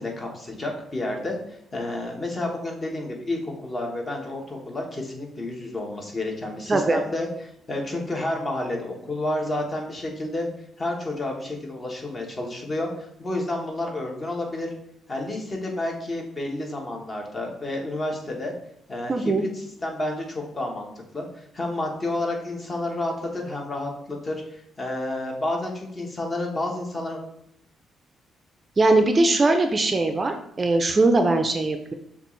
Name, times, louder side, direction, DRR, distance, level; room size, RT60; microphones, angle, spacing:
voice 1, 0.0-1.4 1.7-10.5 10.8-14.7 15.1-18.5 18.9-27.2, left 1 dB, 30° left, 1 dB, 1.1 m, -30 dB
voice 2, 6.7-7.0 19.1-19.4 28.8-31.9, right 2 dB, 30° right, 6 dB, 0.4 m, -20 dB
6.5 x 2.4 x 3.1 m, 0.77 s
cardioid pair, 90°, 0 cm